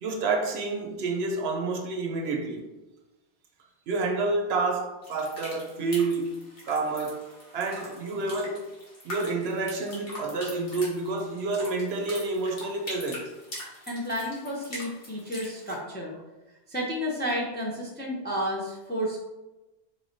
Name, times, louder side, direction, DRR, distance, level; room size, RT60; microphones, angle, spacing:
voice 1, 0.0-2.7 3.9-6.4 6.6-7.3 7.5-8.6 9.0-13.3, right 3 dB, 70° right, 0.8 m, -29 dB
sound 1, 5.0-15.8, left 1 dB, 90° left, 1.6 m, -43 dB
voice 2, 13.9-16.1 16.7-19.2, equal, 15° left, 0.5 m, -31 dB
4.3 x 3.1 x 2.6 m
omnidirectional pair, 1.2 m